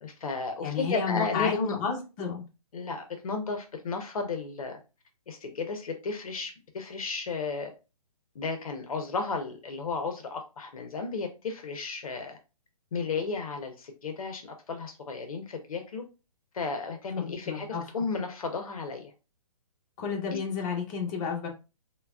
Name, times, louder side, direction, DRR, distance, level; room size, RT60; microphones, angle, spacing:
voice 1, 0.0-1.8 2.7-4.8 5.3-7.7 8.3-12.4 12.9-16.0 16.5-19.1, left 4 dB, 70° left, 6 dB, 0.7 m, -33 dB
voice 2, 0.6-2.4 17.2-17.8 20.0-21.5, left 6 dB, 25° left, 0 dB, 0.8 m, -31 dB
3.1 x 2.2 x 2.3 m, 0.30 s
hypercardioid pair, 140°, 19 cm